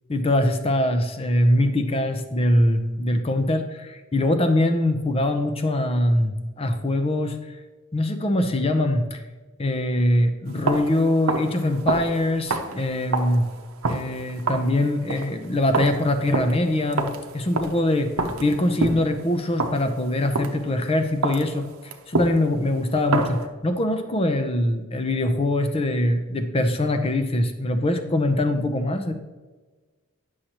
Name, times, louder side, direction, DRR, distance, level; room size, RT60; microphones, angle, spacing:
voice 1, 0.1-7.4 7.9-9.2 9.6-13.5 13.9-18.1 18.4-29.1, left 1 dB, 25° left, 8 dB, 0.6 m, -23 dB
sound 1, 10.5-20.8 21.2-23.5, right 3 dB, 90° right, 0.7 m, -29 dB
9.9 x 6.4 x 2.9 m, 1.3 s
head